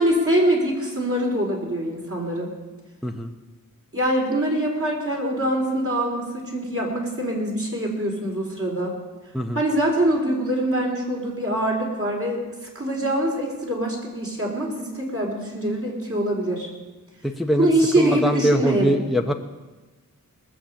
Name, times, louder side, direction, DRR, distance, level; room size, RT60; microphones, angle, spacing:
voice 1, 0.0-2.5 3.9-8.9 9.5-16.7 17.6-19.0, right 1 dB, 40° right, -2 dB, 4.3 m, -24 dB
voice 2, 17.2-17.7 18.0-19.3, equal, ahead, 3 dB, 0.9 m, -22 dB
19.5 x 7.4 x 7.2 m, 1.2 s
wide cardioid pair, 55°, 34 cm